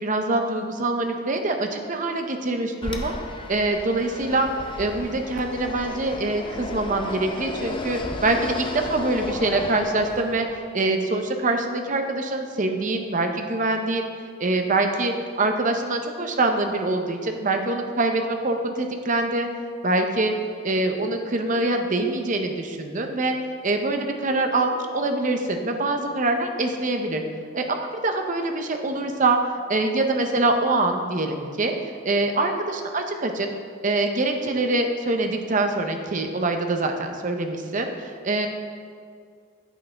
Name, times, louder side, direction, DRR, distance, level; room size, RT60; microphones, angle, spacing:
voice 1, 0.0-3.1 3.5-4.5 4.8-10.5 10.7-14.1 14.4-19.5 19.8-20.3 20.6-23.4 23.6-27.2 27.5-29.4 29.7-31.7 32.0-33.5 33.8-38.5, right 2 dB, 35° right, 5 dB, 0.7 m, -24 dB
Fixed-wing aircraft airplane, 2.8-10.6, left 2 dB, 25° left, 0.5 m, -34 dB
9.0 x 8.2 x 3.4 m, 2.2 s
head